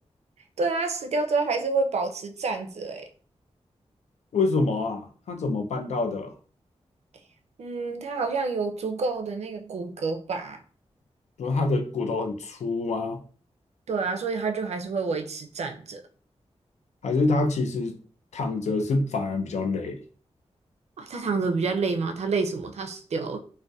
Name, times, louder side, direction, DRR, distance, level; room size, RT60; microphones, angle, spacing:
voice 1, 0.6-3.0 7.6-10.6 13.9-16.0 21.0-23.4, right 4 dB, 70° right, 0.4 m, -28 dB
voice 2, 4.3-6.3 11.4-13.2 17.0-18.0 18.3-20.0, left 3 dB, 85° left, 0.4 m, -26 dB
2.6 x 2.1 x 2.2 m
wide cardioid pair, 120°, 11 cm